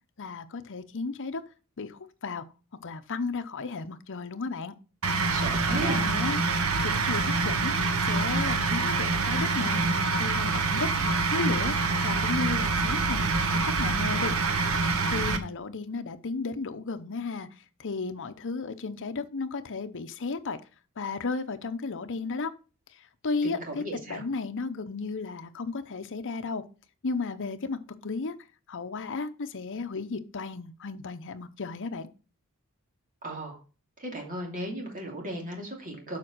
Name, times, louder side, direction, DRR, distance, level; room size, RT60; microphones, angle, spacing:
voice 1, 0.2-1.4 1.8-2.4 2.8-4.7 5.7-6.4 6.8-7.8 8.1-9.8 10.2-10.9 11.3-11.8 12.0-14.4 15.1-17.5 17.8-20.6 21.0-22.5 23.2-26.6 27.0-28.3 28.7-32.1, left 4 dB, 60° left, 9 dB, 0.8 m, -34 dB
sound 1, 5.0-15.4, right 3 dB, 70° right, 1.1 m, -26 dB
voice 2, 5.3-6.0 23.4-24.2 33.2-33.6 34.0-36.2, right 1 dB, 40° right, 1 dB, 2.6 m, -36 dB
7.5 x 5.2 x 6.1 m, 0.35 s
head